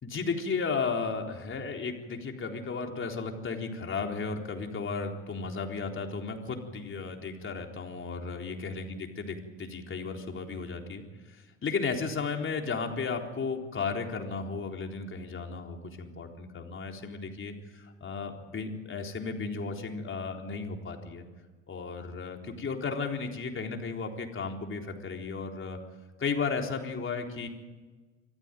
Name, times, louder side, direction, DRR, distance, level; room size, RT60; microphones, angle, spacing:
voice 1, 0.0-21.2 21.7-25.8 26.2-27.5, left 4 dB, 35° left, 3 dB, 4.0 m, -34 dB
25.0 x 15.0 x 9.2 m, 1.3 s
hypercardioid pair, 65°, 36 cm